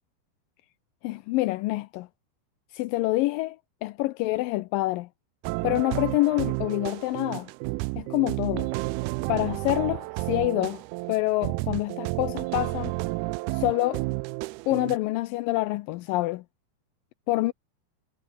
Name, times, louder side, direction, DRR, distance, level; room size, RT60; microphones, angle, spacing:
voice 1, 1.0-2.1 2.7-3.6 3.8-5.1 5.6-7.5 8.0-8.7 9.3-10.8 11.1-12.9 13.5-14.0 14.7-16.4 17.3-17.5, left 19 dB, 80° left, 2.0 m, -26 dB
sound 1, 5.4-15.0, right 23 dB, 80° right, 2.4 m, -31 dB
omnidirectional pair, 4.7 m